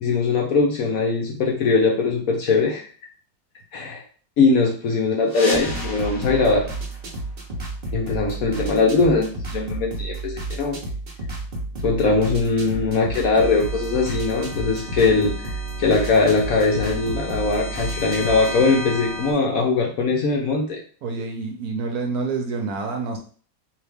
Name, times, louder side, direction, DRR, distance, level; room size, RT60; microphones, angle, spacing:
voice 1, 0.0-2.9 3.7-4.0 4.4-6.6 7.9-10.8 11.8-20.8, left 3 dB, 65° left, 0 dB, 1.0 m, -21 dB
sound 1, 5.2-7.9, left 1 dB, 35° left, 1.7 m, -33 dB
sound 2, 5.5-18.6, right 3 dB, 45° right, 0.8 m, -32 dB
sound 3, 13.3-19.3, left 2 dB, 10° left, 0.4 m, -35 dB
voice 2, 21.0-23.2, right 4 dB, 65° right, 3 dB, 1.0 m, -27 dB
3.8 x 2.8 x 3.4 m, 0.42 s
omnidirectional pair, 1.9 m